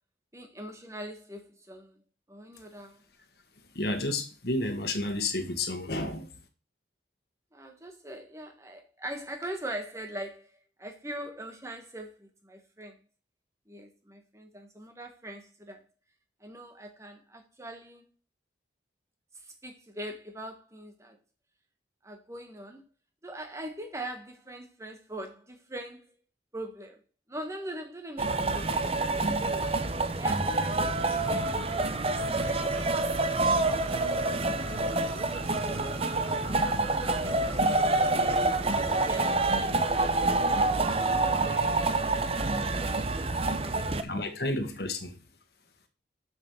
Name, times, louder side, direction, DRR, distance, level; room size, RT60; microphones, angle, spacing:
voice 1, 0.3-2.0 2.3-3.0 7.5-10.5 10.8-13.0 13.7-15.8 16.4-18.1 19.3-21.2 22.0-22.8 23.2-26.1 26.5-27.0 27.3-29.3 30.2-31.0 31.3-31.5 32.3-33.2 33.6-34.6 37.2-38.2 38.6-39.4 39.8-42.8 43.4-44.4 44.8-44.9, right 1 dB, 15° right, 1.4 m, -42 dB
voice 2, 3.7-6.3 37.8-37.9 44.0-45.2, left 2 dB, 60° left, 1.5 m, -31 dB
sound 1, 28.2-44.0, right 2 dB, 30° right, 0.8 m, -27 dB
sound 2, 31.1-39.5, right 3 dB, 75° right, 2.3 m, -46 dB
6.9 x 6.5 x 7.1 m
head